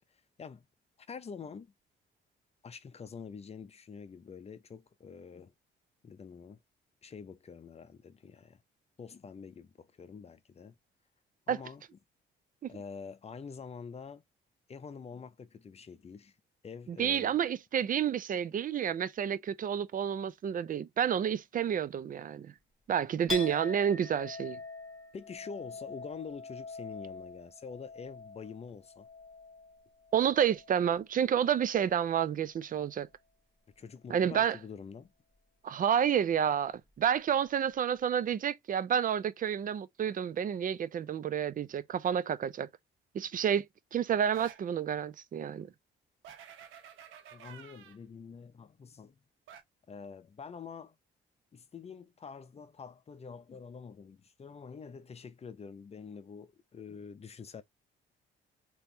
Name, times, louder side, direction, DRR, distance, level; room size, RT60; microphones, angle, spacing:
voice 1, 0.1-0.7 1.1-1.7 2.6-5.5 6.0-6.6 7.0-8.6 9.0-10.8 11.5-11.8 12.7-14.2 14.7-16.4 16.6-17.3 25.1-29.1 33.8-35.1 47.3-49.2 49.9-51.0 51.5-57.6, left 5 dB, 30° left, 0.6 m, -46 dB
voice 2, 16.9-22.5 22.9-24.6 30.1-33.1 34.1-34.6 35.6-42.7 43.1-43.7 43.9-45.7, right 8 dB, 45° right, 0.5 m, -30 dB
Chink clink, 23.3-31.0 31.3-32.0, left 4 dB, ahead, 1.7 m, -44 dB
sound 1, 44.3-44.7 46.2-48.0 49.5-49.6, right 8 dB, 85° right, 0.8 m, -50 dB
3.4 x 3.0 x 2.7 m
cardioid pair, 90°, 20 cm